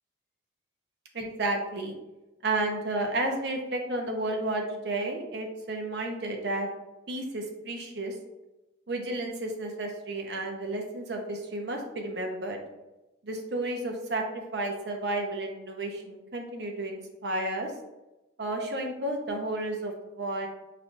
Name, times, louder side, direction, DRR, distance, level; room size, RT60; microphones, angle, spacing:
voice 1, 1.1-2.0 2.4-6.7 7.1-8.2 8.9-12.6 13.2-14.2 14.5-17.7 18.4-20.5, right 2 dB, 60° right, 2 dB, 0.7 m, -32 dB
5.1 x 3.2 x 2.5 m, 1.0 s
head